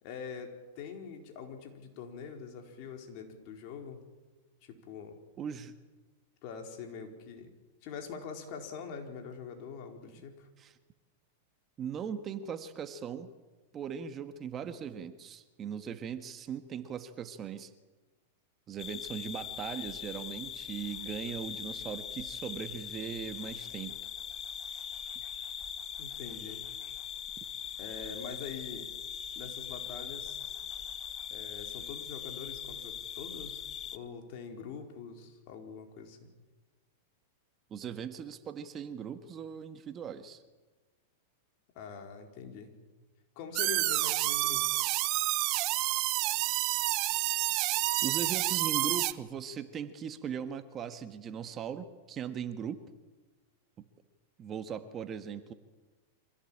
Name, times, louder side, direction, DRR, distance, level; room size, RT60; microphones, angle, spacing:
voice 1, 0.0-4.1 4.6-5.2 6.4-7.5 7.8-10.5 26.0-26.6 27.8-28.9 29.4-30.5 31.3-33.6 33.9-36.3 41.7-42.7 43.4-44.7, left 6 dB, 50° left, 4 dB, 4.5 m, -44 dB
voice 2, 5.4-5.7 10.6-10.7 11.8-13.3 13.7-17.7 18.7-24.0 37.7-40.4 47.3-47.7 48.0-52.8 54.4-55.5, right 7 dB, 25° right, 9 dB, 1.6 m, -39 dB
sound 1, 18.8-34.0, left 9 dB, 30° left, 1.3 m, -41 dB
sound 2, 43.6-49.1, right 19 dB, 45° right, 1.0 m, -29 dB
25.5 x 16.5 x 8.8 m, 1.2 s
hypercardioid pair, 130°, 0 cm